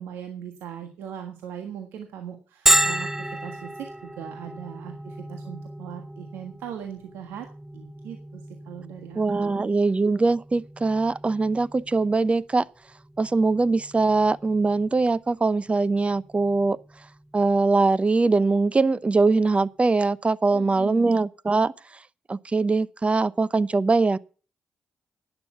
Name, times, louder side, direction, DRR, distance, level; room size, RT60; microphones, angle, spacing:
voice 1, 0.0-9.7 20.5-21.2, right 9 dB, 80° right, 1.5 m, -39 dB
Bell, 2.7-18.1, right 1 dB, 10° right, 0.5 m, -32 dB
voice 2, 9.2-12.6 13.2-16.8 17.3-21.7 22.3-24.2, right 3 dB, 35° right, 0.8 m, -22 dB
11.5 x 8.9 x 6.9 m
hypercardioid pair, 40°, 4 cm